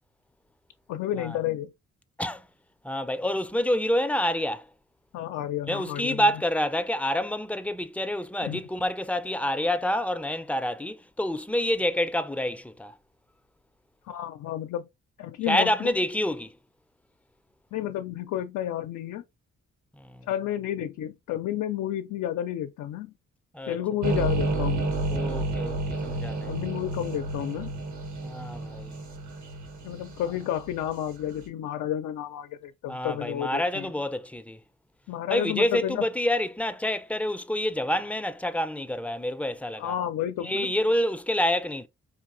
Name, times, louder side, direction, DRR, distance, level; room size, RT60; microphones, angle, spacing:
voice 1, 0.9-1.7 5.1-6.2 8.4-8.6 14.1-14.9 15.2-15.9 17.7-19.2 20.3-23.1 23.7-24.9 26.5-27.7 29.8-33.9 35.1-36.0 39.8-40.7, left 11 dB, 80° left, 0.5 m, -31 dB
voice 2, 2.8-4.7 5.7-13.0 15.5-16.5 20.0-20.3 23.5-23.8 25.1-26.5 28.2-29.0 32.9-34.6 35.3-40.0 40.4-41.9, left 1 dB, 5° left, 0.5 m, -28 dB
sound 1, 24.0-31.1, right 2 dB, 65° right, 1.3 m, -30 dB
4.8 x 2.8 x 2.5 m
supercardioid pair, 55°, 30 cm